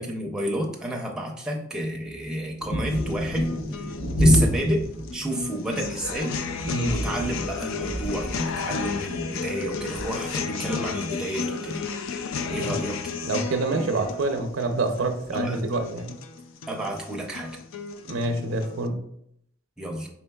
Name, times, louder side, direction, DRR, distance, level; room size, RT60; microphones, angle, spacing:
voice 1, 0.0-3.5 4.2-6.4 6.9-11.8 12.5-13.0 15.3-15.6 16.7-17.6 19.8-20.1, right 1 dB, 5° right, -1 dB, 0.5 m, -30 dB
sound 1, 2.6-10.9 12.2-12.6 15.3-15.4 15.8-15.9, equal, 60° left, 0.9 m, -28 dB
sound 2, 2.9-18.9, left 5 dB, 75° left, 0.3 m, -33 dB
voice 2, 6.6-7.0 12.5-12.7 13.2-16.1 18.1-19.0, right 2 dB, 75° right, 6 dB, 0.5 m, -27 dB
4.4 x 3.4 x 2.2 m, 0.71 s
head